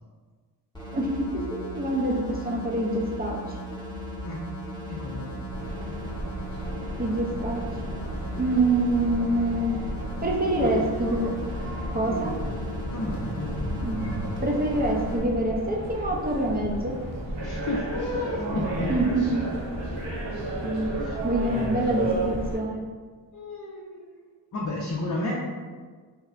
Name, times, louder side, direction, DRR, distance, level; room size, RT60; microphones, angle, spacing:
sound 1, 0.7-15.2, equal, 10° left, 0.9 m, -37 dB
voice 1, 0.9-1.3 1.6-3.6 7.0-7.6 8.4-9.8 10.2-11.3 11.9-12.3 13.8-14.0 14.4-16.9 18.9-19.4 20.6-20.9 21.2-22.8, right 1 dB, 20° right, -1 dB, 0.5 m, -26 dB
voice 2, 4.9-5.4 10.5-10.7 12.0-12.5 12.9-13.8 17.4-18.9 21.0-21.2 23.3-24.3 24.5-25.3, left 2 dB, 45° left, -4 dB, 0.5 m, -32 dB
sound 2, 5.5-22.6, right 1 dB, 90° right, 0.6 m, -33 dB
2.9 x 2.2 x 2.4 m, 1.5 s
cardioid pair, 50°, 44 cm